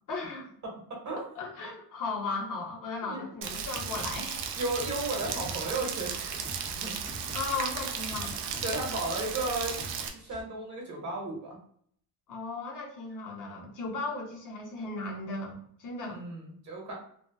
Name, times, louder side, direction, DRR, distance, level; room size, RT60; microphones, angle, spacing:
voice 1, 0.1-0.5 1.3-4.5 7.3-8.5 9.1-9.2 12.3-16.2, left 3 dB, 50° left, -1 dB, 0.8 m, -36 dB
voice 2, 0.6-1.4 3.1-3.3 4.6-7.3 8.6-11.6 16.1-16.9, right 2 dB, 45° right, -1 dB, 0.9 m, -35 dB
Rain, 3.4-10.1, right 7 dB, 80° right, 0.5 m, -35 dB
sound 1, 3.7-10.4, equal, ahead, 0.4 m, -46 dB
2.7 x 2.1 x 2.2 m, 0.63 s
cardioid pair, 145°, 41 cm